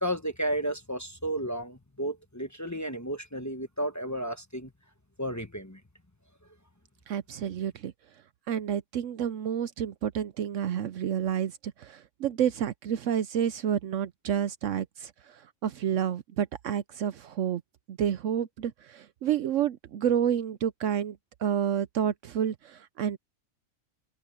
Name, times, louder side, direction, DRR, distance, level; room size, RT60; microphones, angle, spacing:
voice 1, 0.0-4.7 5.2-5.8, right 1 dB, 15° left, 1.1 m, -33 dB
voice 2, 7.1-7.9 8.5-17.6 17.9-23.2, right 9 dB, 65° right, 0.9 m, -29 dB
omnidirectional pair, 1.5 m